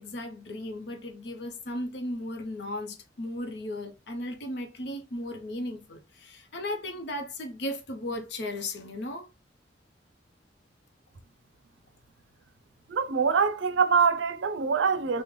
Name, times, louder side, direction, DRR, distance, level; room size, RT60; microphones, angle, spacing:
voice 1, 0.0-9.3, left 1 dB, 65° left, 0.7 m, -36 dB
voice 2, 12.9-15.2, right 5 dB, 85° right, 0.5 m, -24 dB
3.2 x 2.1 x 3.6 m
head